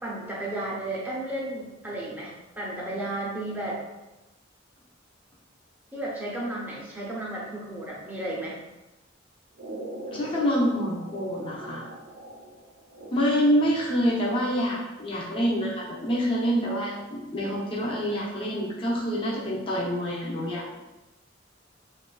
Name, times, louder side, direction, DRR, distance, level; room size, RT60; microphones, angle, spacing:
voice 1, 0.0-3.8 5.9-8.6, right 1 dB, 10° right, -5 dB, 0.6 m, -33 dB
sound 1, 9.6-13.6, right 2 dB, 85° right, 0.6 m, -41 dB
voice 2, 10.1-11.9 13.1-20.8, equal, 25° left, -5 dB, 0.6 m, -26 dB
3.4 x 2.4 x 2.2 m, 1.0 s
head